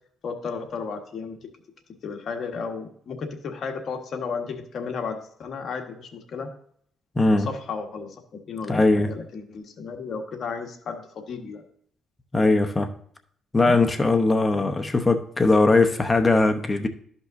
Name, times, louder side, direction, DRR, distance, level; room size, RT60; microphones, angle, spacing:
voice 1, 0.2-1.4 2.0-6.5 7.3-8.1 8.5-11.6 13.6-13.8 14.5-14.9, left 5 dB, 60° left, 4 dB, 1.4 m, -33 dB
voice 2, 7.2-7.5 8.7-9.1 12.3-12.9 13.5-16.9, left 2 dB, 20° left, 6 dB, 0.9 m, -20 dB
13.0 x 5.5 x 2.6 m, 0.63 s
cardioid pair, 90°, 0 cm